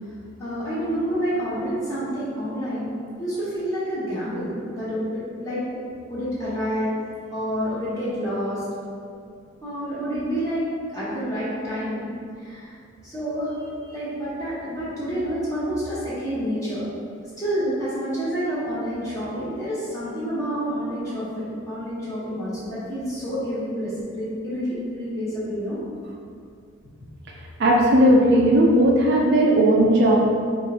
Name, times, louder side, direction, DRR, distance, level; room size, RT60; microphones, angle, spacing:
voice 1, 0.4-5.6 6.1-7.0 7.3-8.6 9.6-10.6 10.9-12.1 12.4-12.7 13.0-13.5 13.9-16.8 17.4-25.8, equal, 15° left, -10 dB, 1.2 m, -28 dB
voice 2, 27.6-30.2, right 1 dB, 50° right, -1 dB, 0.4 m, -16 dB
4.9 x 2.5 x 3.4 m, 2.3 s
head